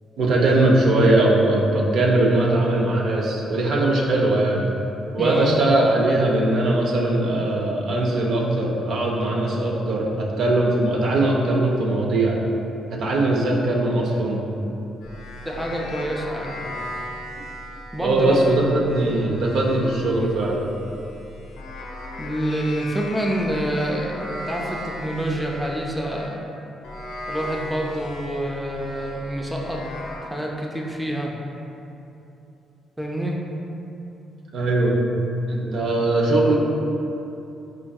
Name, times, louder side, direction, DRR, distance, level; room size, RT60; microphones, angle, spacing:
voice 1, 0.2-4.7 5.1-12.4 12.9-14.4 16.6-16.7 18.0-20.6 34.5-35.0 35.5-36.5, right 2 dB, 70° right, -2 dB, 0.5 m, -20 dB
voice 2, 5.2-5.5 15.5-16.6 17.9-18.6 22.2-26.4 27.3-29.8 30.2-31.3 33.0-33.4, right 1 dB, ahead, -2 dB, 0.4 m, -27 dB
sound 1, 15.0-26.4 26.8-30.2, left 1 dB, 85° left, 0.5 m, -37 dB
4.5 x 2.5 x 2.3 m, 2.8 s
cardioid pair, 90°, 0 cm